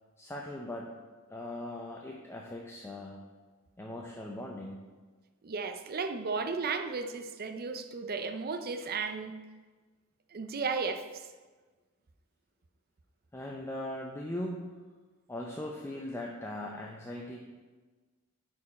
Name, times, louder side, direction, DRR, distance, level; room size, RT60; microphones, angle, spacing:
voice 1, 0.2-0.9 1.3-3.2 3.8-4.8 13.3-14.7 15.3-17.5, left 1 dB, 10° left, -1 dB, 0.6 m, -39 dB
voice 2, 5.4-9.4 10.3-11.3, right 4 dB, 45° right, 8 dB, 0.5 m, -34 dB
9.7 x 4.6 x 4.2 m, 1.3 s
head